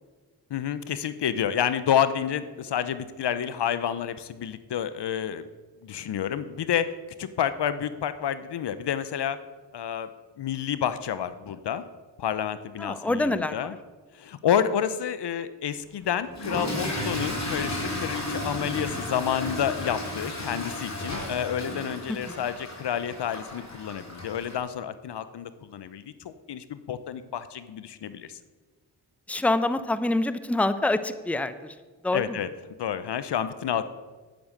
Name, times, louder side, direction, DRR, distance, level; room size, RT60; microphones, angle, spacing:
voice 1, 0.5-5.5 5.8-6.9 7.2-9.4 9.7-10.1 10.4-11.8 12.2-13.7 14.1-28.4 32.1-32.5 32.8-33.8, left 9 dB, 65° left, 13 dB, 0.9 m, -29 dB
voice 2, 12.8-13.8 22.1-22.5 29.3-31.7 32.0-32.4, left 2 dB, 5° left, 13 dB, 0.8 m, -26 dB
Toilet flush / Fill (with liquid), 16.3-24.6, left 1 dB, 35° left, 3.8 m, -33 dB
10.5 x 9.0 x 6.6 m, 1.3 s
supercardioid pair, 45°, 45 cm